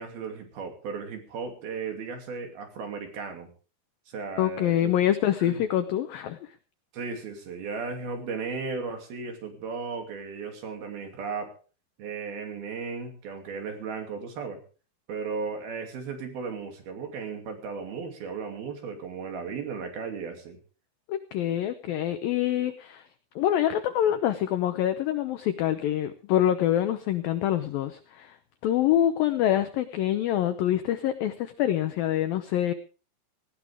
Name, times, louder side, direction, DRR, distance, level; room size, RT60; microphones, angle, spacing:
voice 1, 0.0-3.5 4.1-4.9 5.4-5.6 6.9-11.5 12.0-14.6 15.1-20.6, right 5 dB, 60° right, 4 dB, 4.4 m, -35 dB
voice 2, 4.4-6.5 21.1-23.0 23.4-28.4 28.6-32.7, left 11 dB, 80° left, 10 dB, 2.1 m, -25 dB
18.5 x 16.5 x 3.6 m, 0.36 s
omnidirectional pair, 5.3 m